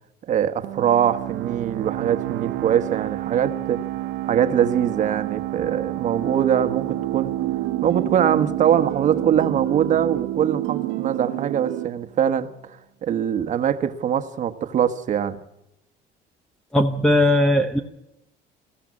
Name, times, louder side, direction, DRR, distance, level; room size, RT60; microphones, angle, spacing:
voice 1, 0.3-3.8 4.3-7.3 7.8-12.5 13.0-15.4, right 9 dB, 40° right, 9 dB, 1.3 m, -22 dB
sound 1, 0.6-12.0, right 15 dB, 70° right, 0.9 m, -31 dB
sound 2, 6.2-11.9, right 15 dB, 90° right, 1.4 m, -29 dB
voice 2, 16.7-17.8, left 1 dB, 5° left, 7 dB, 0.8 m, -18 dB
21.5 x 15.5 x 9.7 m, 0.88 s
cardioid pair, 170°, 19 cm